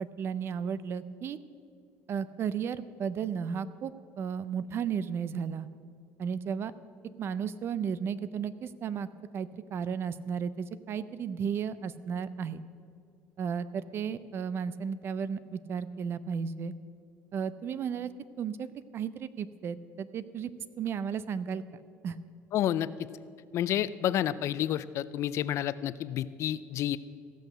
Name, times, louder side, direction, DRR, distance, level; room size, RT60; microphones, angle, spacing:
voice 1, 0.0-1.4 2.1-3.9 4.2-5.7 6.2-6.7 7.2-9.1 9.3-12.6 13.4-16.7 17.3-18.1 18.4-18.7 18.9-20.5 20.8-21.6 22.0-22.2, right 7 dB, 45° right, 16 dB, 0.5 m, -34 dB
voice 2, 22.5-22.9 23.5-27.0, left 11 dB, 55° left, 16 dB, 0.4 m, -29 dB
15.5 x 6.3 x 6.6 m, 2.3 s
cardioid pair, 110°, 6 cm